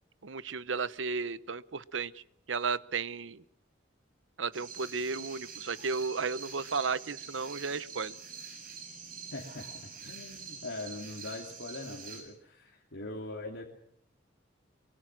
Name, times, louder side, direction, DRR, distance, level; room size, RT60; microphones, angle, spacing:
voice 1, 0.2-2.2 2.5-3.4 4.4-8.1, right 5 dB, 80° right, 17 dB, 0.8 m, -34 dB
sound 1, 4.5-12.2, right 5 dB, 50° right, 7.3 m, -46 dB
voice 2, 9.3-13.6, left 2 dB, 85° left, -1 dB, 2.8 m, -42 dB
23.5 x 23.5 x 6.1 m, 0.69 s
head